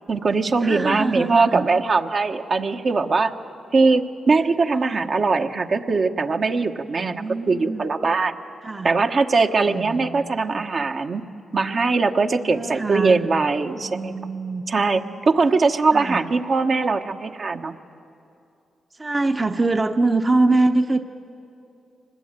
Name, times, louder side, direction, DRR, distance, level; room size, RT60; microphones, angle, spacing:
voice 1, 0.1-3.3 3.7-8.3 8.8-11.2 11.5-14.1 14.7-17.8, right 4 dB, 55° right, 4 dB, 1.2 m, -21 dB
voice 2, 0.6-1.6 4.8-5.1 7.0-7.8 8.6-8.9 9.7-10.7 12.5-13.2 13.8-14.6 15.9-16.2 19.0-21.0, right 2 dB, 30° right, 6 dB, 0.9 m, -24 dB
24.5 x 20.5 x 9.0 m, 2.6 s
cardioid pair, 55°, 0 cm